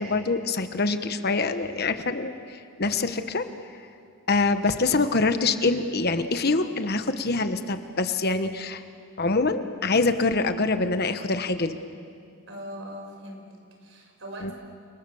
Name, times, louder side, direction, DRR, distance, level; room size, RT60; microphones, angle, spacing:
voice 1, 0.0-3.4 4.3-8.8 9.2-11.8 14.4-14.5, left 3 dB, 45° left, 9 dB, 1.2 m, -25 dB
voice 2, 12.5-14.5, equal, 60° right, 2 dB, 5.9 m, -40 dB
30.0 x 26.0 x 7.1 m, 2.3 s
head